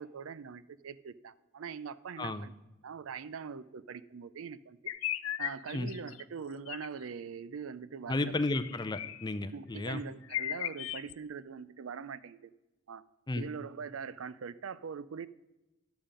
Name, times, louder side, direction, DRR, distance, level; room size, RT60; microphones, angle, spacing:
voice 1, 0.0-2.5 2.8-4.8 5.4-8.3 9.5-12.5 12.9-13.0 13.3-15.3, right 6 dB, 90° right, 16 dB, 0.5 m, -42 dB
voice 2, 2.2-2.5 5.7-5.9 8.1-10.0 13.3-13.5, left 2 dB, 20° left, 12 dB, 0.5 m, -33 dB
sound 1, 4.9-6.2 6.7-6.9 8.5-9.3 9.9-10.0 10.2-11.1, left 12 dB, 85° left, 0.4 m, -37 dB
11.0 x 7.1 x 5.1 m, 1.0 s
head